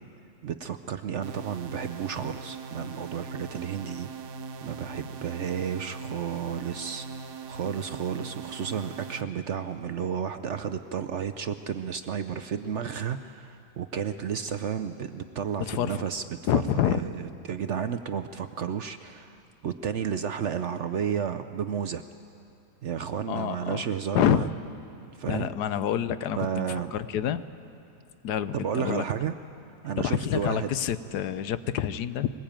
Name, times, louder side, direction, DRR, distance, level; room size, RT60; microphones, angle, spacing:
voice 1, 0.4-4.1 4.6-7.1 7.5-22.0 22.8-24.5 25.2-25.5 26.4-26.9 28.5-29.3 29.8-30.7, right 8 dB, 60° right, 9 dB, 0.8 m, -32 dB
sound 1, 1.2-9.2, right 4 dB, 85° right, 1.5 m, -40 dB
voice 2, 15.6-16.0 16.5-17.0 23.3-23.8 24.1-24.5 25.3-27.4 28.2-29.0 30.0-32.3, left 10 dB, 80° left, 13 dB, 1.3 m, -27 dB
22.5 x 20.0 x 8.8 m, 2.7 s
omnidirectional pair, 1.7 m